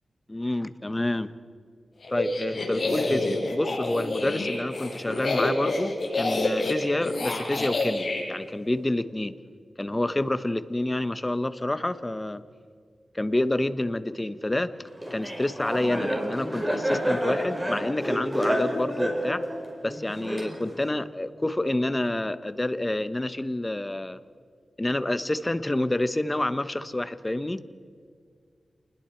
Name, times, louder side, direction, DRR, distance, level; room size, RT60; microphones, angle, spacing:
voice 1, 0.3-1.3 2.1-9.3 9.8-12.4 13.1-14.7 15.1-19.4 19.8-24.2 24.8-27.6, left 1 dB, 20° left, 12 dB, 1.0 m, -28 dB
sound 1, 2.0-8.2, left 2 dB, 55° left, 5.9 m, -28 dB
Laughter, 15.0-20.9, equal, 20° right, 4.7 m, -29 dB
29.0 x 20.5 x 4.5 m, 2.1 s
wide cardioid pair, 85°, 0 cm